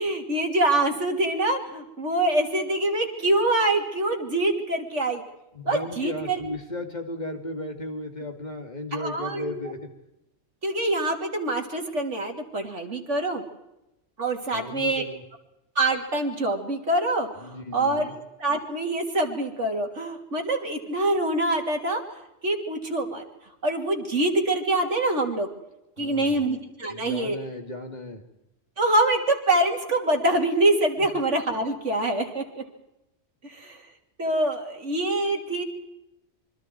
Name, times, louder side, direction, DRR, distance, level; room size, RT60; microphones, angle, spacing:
voice 1, 0.0-5.2 5.6-6.4 8.9-9.6 10.6-13.4 14.2-15.0 15.7-18.1 18.4-22.0 22.4-23.2 23.6-25.5 26.0-27.4 28.8-32.6 33.4-33.8 34.2-35.6, right 2 dB, 75° right, 3 dB, 3.2 m, -25 dB
voice 2, 5.5-9.9 14.5-15.2 17.4-18.1 26.0-26.4 26.9-28.2 31.0-31.1, left 1 dB, 35° left, 4 dB, 2.5 m, -35 dB
26.0 x 24.5 x 4.6 m, 0.90 s
omnidirectional pair, 1.2 m